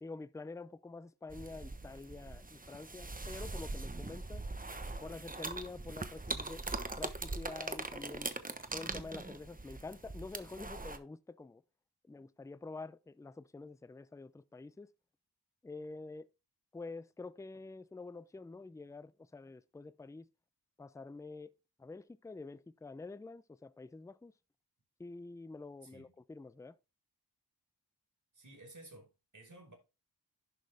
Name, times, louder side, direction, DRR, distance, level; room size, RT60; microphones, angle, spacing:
voice 1, 0.0-4.5 5.0-6.6 7.0-8.3 8.7-11.6 12.1-14.9 15.6-16.3 16.7-20.3 20.8-21.5 21.8-24.3 25.0-26.8, left 3 dB, 10° left, 0.4 m, -47 dB
sound 1, 1.3-11.0, right 2 dB, 20° right, 1.0 m, -42 dB
voice 2, 25.8-26.1 28.3-29.7, right 2 dB, 50° right, 5.0 m, -54 dB
11.0 x 6.2 x 3.4 m
wide cardioid pair, 65°, 40 cm